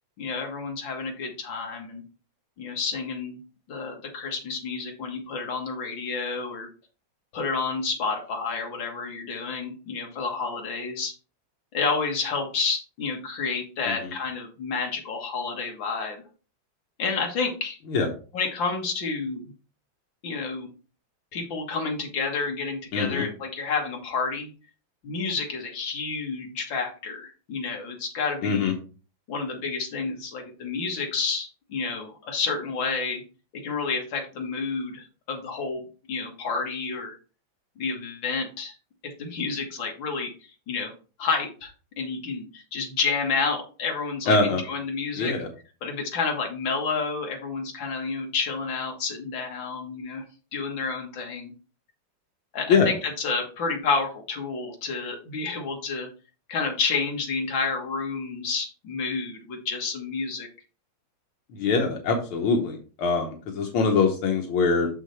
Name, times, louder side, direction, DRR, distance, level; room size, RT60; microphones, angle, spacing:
voice 1, 0.2-2.0 2.6-3.4 3.7-6.7 7.3-11.1 11.7-16.2 17.0-17.8 18.3-19.4 20.2-20.7 21.3-24.5 25.0-28.7 29.3-33.2 33.5-35.8 36.1-37.2 37.8-38.7 39.0-40.3 40.7-40.9 41.2-41.7 42.0-45.3 45.8-50.2 50.5-51.5 52.5-56.1 56.5-60.5, left 4 dB, 65° left, 1 dB, 2.3 m, -30 dB
voice 2, 22.9-23.2 28.4-28.7 44.3-44.6 45.2-45.5 52.7-52.9 61.5-64.9, left 4 dB, 85° left, 2 dB, 2.0 m, -23 dB
6.7 x 6.2 x 3.2 m, 0.35 s
omnidirectional pair, 2.3 m